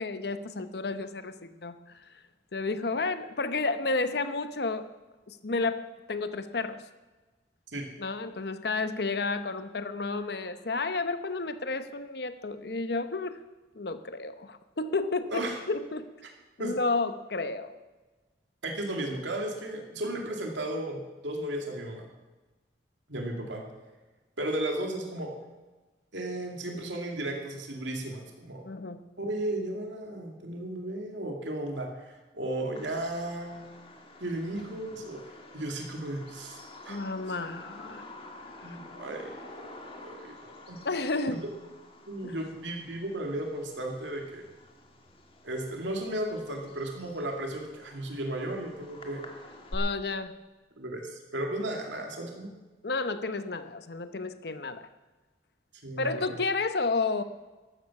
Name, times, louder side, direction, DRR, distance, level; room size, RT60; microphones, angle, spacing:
voice 1, 0.0-1.8 2.5-4.9 5.3-5.8 6.1-6.8 8.0-13.4 13.8-16.1 16.6-17.8 28.6-29.0 36.9-38.0 40.8-41.4 42.2-42.4 49.7-50.3 52.8-54.9 56.0-57.2, left 3 dB, 60° left, 11 dB, 0.8 m, -31 dB
voice 2, 18.6-22.1 23.1-23.6 24.4-25.3 26.1-28.7 29.2-33.6 34.2-35.2 35.5-37.0 38.6-40.8 42.1-44.4 45.4-49.2 50.8-52.5 55.8-56.3, right 1 dB, 90° right, 2 dB, 2.3 m, -35 dB
Bird vocalization bird call bird song, 32.7-49.7, left 2 dB, 30° left, 1.9 m, -50 dB
14.5 x 13.0 x 6.0 m, 1.2 s
head